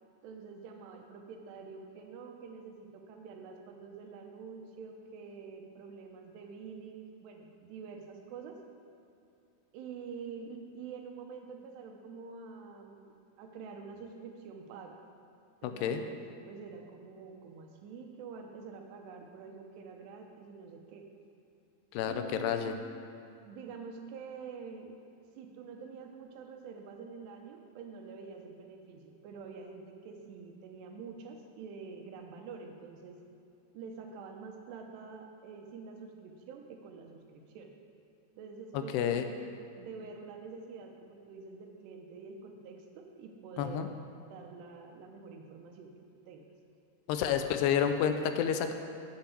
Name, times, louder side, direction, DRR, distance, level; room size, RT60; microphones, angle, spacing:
voice 1, 0.2-8.6 9.7-15.0 15.6-21.1 22.1-22.8 23.5-24.9 25.4-33.2 33.7-37.7 38.4-45.9 46.3-46.5, right 5 dB, 85° right, 3 dB, 3.0 m, -47 dB
voice 2, 15.6-16.0 21.9-22.8 38.7-39.3 43.6-43.9 47.1-48.7, left 8 dB, 85° left, 7 dB, 2.7 m, -30 dB
8.7 x 5.9 x 8.2 m, 2.7 s
omnidirectional pair, 4.8 m